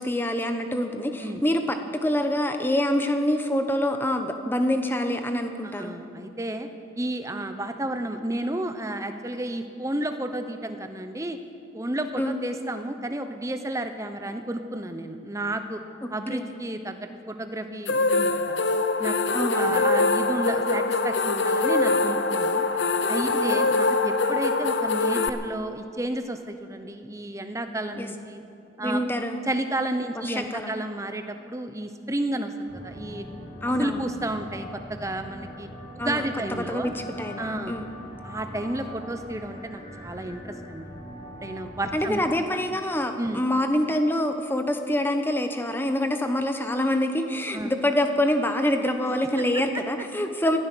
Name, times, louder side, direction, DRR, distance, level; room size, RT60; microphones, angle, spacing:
voice 1, 0.0-5.9 12.2-12.4 16.3-16.5 19.3-19.8 23.3-23.6 28.0-28.1 28.8-29.4 30.1-30.8 33.6-34.0 36.0-37.9 41.9-50.6, left 1 dB, 10° left, 6 dB, 0.9 m, -26 dB
voice 2, 5.6-6.7 7.0-11.4 11.7-15.8 16.1-18.6 19.0-22.7 23.1-28.4 28.8-29.0 29.5-33.3 33.7-35.7 35.9-36.9 37.4-37.7 38.2-41.0 41.4-42.2 43.2-43.4 47.5-47.7, right 1 dB, 15° right, 8 dB, 0.8 m, -32 dB
sound 1, 17.9-25.3, left 3 dB, 70° left, 0.7 m, -23 dB
sound 2, 32.7-42.4, equal, 55° left, 5.2 m, -41 dB
18.0 x 12.5 x 6.2 m, 2.6 s
head